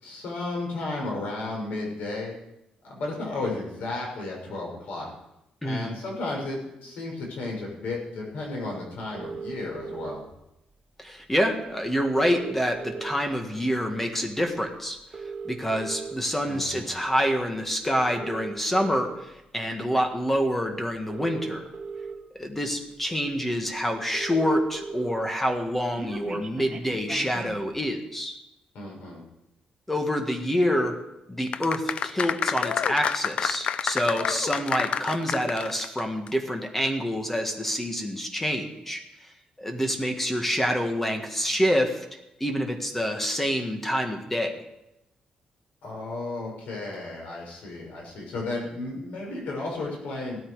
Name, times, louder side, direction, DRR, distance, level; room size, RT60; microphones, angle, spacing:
voice 1, 0.0-2.3 2.8-5.1 5.6-10.2 16.5-16.9 28.7-29.2 45.8-50.4, left 2 dB, 85° left, -1 dB, 6.2 m, -33 dB
voice 2, 5.6-6.0 11.0-15.0 15.4-21.7 22.3-28.4 29.9-31.0 31.3-39.3 39.6-42.0 42.4-44.6, equal, 10° left, 4 dB, 1.6 m, -27 dB
sound 1, 9.1-10.2 11.3-11.4 11.7-11.8 12.0-13.4 13.9-14.1 15.0-16.1 16.8-17.1 18.0-19.1 20.4-20.5 21.0-22.1 22.8-22.9 23.2-23.3 23.5-23.6 23.8-25.1 25.5-27.6, right 4 dB, 30° right, 1.8 m, -37 dB
sound 2, 31.5-36.0 36.3-36.4, left 7 dB, 45° left, 0.4 m, -28 dB
17.0 x 13.0 x 4.9 m, 0.87 s
cardioid pair, 170°, 3 cm